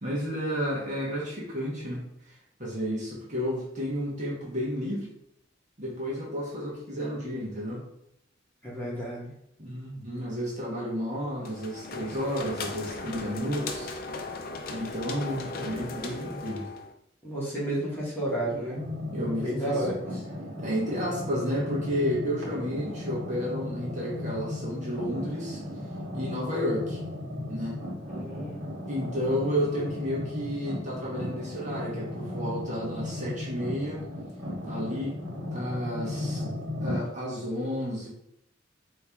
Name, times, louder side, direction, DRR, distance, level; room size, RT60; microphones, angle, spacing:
voice 1, 0.0-2.0 2.6-5.1 5.8-7.8 9.6-14.0 14.7-16.7 19.1-19.8 20.6-25.6 26.1-27.0 27.5-27.8 28.9-34.0 34.6-36.5 36.8-38.1, equal, 40° right, -5 dB, 1.4 m, -31 dB
voice 2, 8.6-9.3 17.2-18.8 19.4-19.9 28.1-28.6, right 1 dB, 10° left, -7 dB, 1.7 m, -31 dB
sound 1, 11.4-16.9, left 3 dB, 50° left, 0.6 m, -37 dB
sound 2, 18.7-37.0, left 1 dB, 85° right, 1.4 m, -36 dB
4.5 x 3.1 x 3.5 m, 0.77 s
head